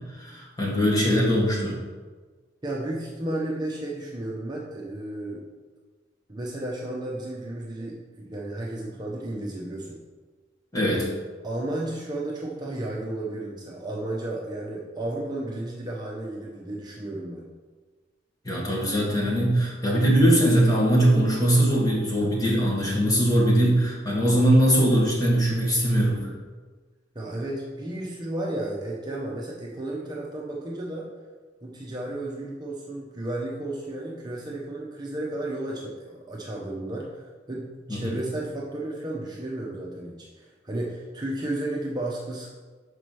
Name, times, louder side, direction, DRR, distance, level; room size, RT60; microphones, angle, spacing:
voice 1, 0.1-1.8 10.7-11.1 18.4-26.3 37.9-38.2, equal, 20° left, -4 dB, 1.7 m, -21 dB
voice 2, 2.6-5.4 6.3-10.0 11.4-17.5 27.1-31.1 31.6-42.5, right 1 dB, 25° right, -3 dB, 0.8 m, -33 dB
5.3 x 4.8 x 6.1 m, 1.4 s
head